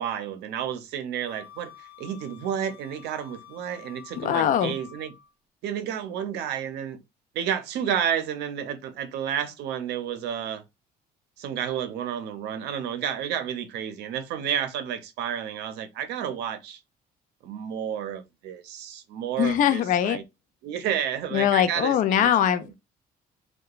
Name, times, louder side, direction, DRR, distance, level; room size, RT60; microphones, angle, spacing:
voice 1, 0.0-5.1 5.6-7.0 7.3-10.6 11.4-16.8 17.4-20.2 20.6-22.6, right 9 dB, 80° right, 0.6 m, -31 dB
Wind instrument woodwind instrument, 1.2-5.3, left 9 dB, 75° left, 0.7 m, -48 dB
voice 2, 4.2-4.7 19.4-20.2 21.3-22.7, left 10 dB, 50° left, 0.4 m, -22 dB
2.8 x 2.2 x 2.3 m
cardioid pair, 110°, 17 cm